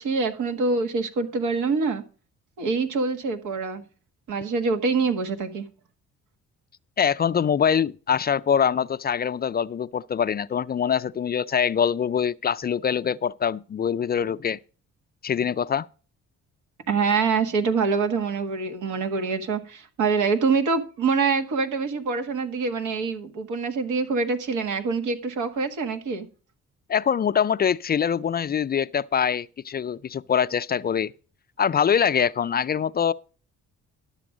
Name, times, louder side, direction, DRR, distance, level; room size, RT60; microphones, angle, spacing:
voice 1, 0.0-2.0 2.6-3.8 4.3-5.6 16.9-26.3, right 4 dB, 85° right, 1.7 m, -25 dB
voice 2, 7.0-14.6 15.2-15.9 26.9-31.1 31.6-33.1, left 7 dB, 35° left, 0.4 m, -24 dB
12.0 x 7.0 x 5.0 m
cardioid pair, 90°, 30 cm